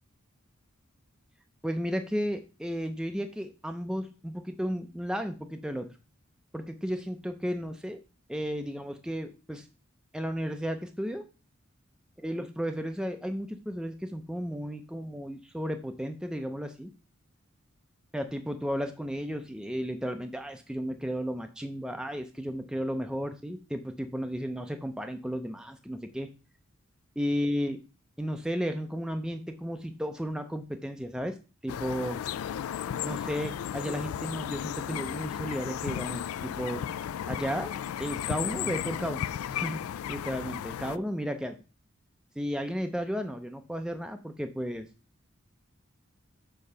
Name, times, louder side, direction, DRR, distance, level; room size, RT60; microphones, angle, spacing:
voice 1, 1.6-5.9 6.5-8.0 8.3-9.7 10.1-11.2 12.2-16.9 18.1-26.3 27.2-27.8 28.2-31.3 31.6-32.2 33.0-36.8 37.3-39.8 40.1-41.6 42.4-44.9, equal, 5° right, 6 dB, 0.5 m, -34 dB
sound 1, 31.7-41.0, left 9 dB, 85° left, 0.3 m, -34 dB
6.7 x 3.7 x 5.4 m, 0.32 s
head